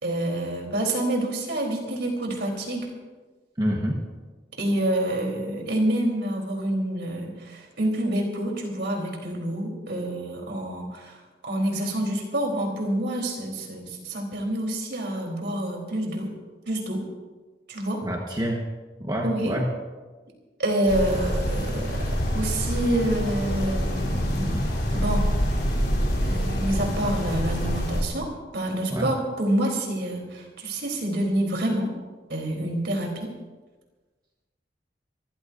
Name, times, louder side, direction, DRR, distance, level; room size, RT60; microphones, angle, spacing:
voice 1, 0.0-2.9 4.6-11.2 11.4-16.3 16.7-17.0 17.7-18.0 19.2-19.5 20.6-24.6 24.9-25.3 26.2-28.3 28.5-31.9 32.3-33.3, right 1 dB, 75° right, 1 dB, 3.9 m, -27 dB
voice 2, 3.6-4.0 18.0-18.6 19.0-19.7 28.9-29.1, equal, 25° right, 0 dB, 1.4 m, -27 dB
sound 1, 20.9-28.0, equal, 60° left, 3.8 m, -26 dB
25.5 x 15.0 x 2.7 m, 1.3 s
head